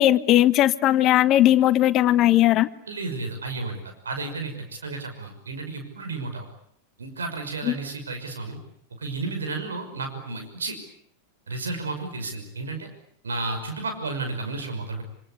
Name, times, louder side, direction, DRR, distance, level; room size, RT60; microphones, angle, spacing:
voice 1, 0.0-2.7 7.7-7.8, left 13 dB, 35° left, 16 dB, 1.2 m, -18 dB
voice 2, 2.9-6.5 7.0-8.6 9.0-10.8 11.5-12.9 13.2-15.0, right 3 dB, 70° right, 6 dB, 5.9 m, -32 dB
26.5 x 26.5 x 8.3 m, 0.67 s
figure-of-eight pair, 90°, 0 cm